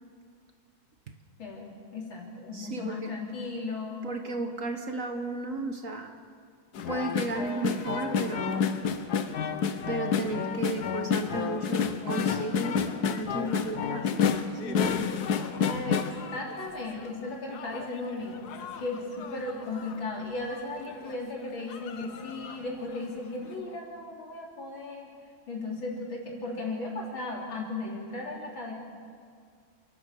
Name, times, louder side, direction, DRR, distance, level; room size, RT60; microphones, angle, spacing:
voice 1, 1.4-4.0 15.7-18.5 18.8-25.1 25.5-28.7, left 2 dB, 75° left, -1 dB, 4.2 m, -36 dB
voice 2, 2.5-3.1 4.0-6.1 6.9-8.6 9.9-15.0, right 3 dB, 45° right, 5 dB, 1.4 m, -34 dB
sound 1, 6.7-17.1 17.5-19.9 20.5-20.6 20.9-21.1 21.7-22.6 23.0-23.1, left 6 dB, 60° left, 1.4 m, -30 dB
28.0 x 12.0 x 8.4 m, 2.1 s
omnidirectional pair, 2.1 m